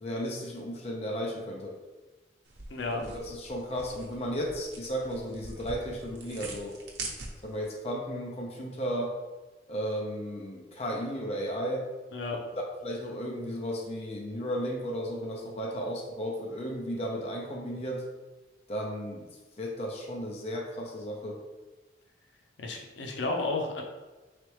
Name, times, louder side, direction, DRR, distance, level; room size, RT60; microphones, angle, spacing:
voice 1, 0.0-1.8 2.9-6.8 7.4-9.1 9.7-11.8 12.8-18.0 18.7-19.3 19.6-21.4, equal, 35° left, -1 dB, 0.5 m, -34 dB
sound 1, 2.5-7.7, right 3 dB, 70° right, 0.7 m, -43 dB
voice 2, 2.7-3.0 12.1-12.4 22.6-23.8, left 3 dB, 85° left, 2 dB, 0.6 m, -32 dB
3.9 x 3.3 x 3.1 m, 1.2 s
head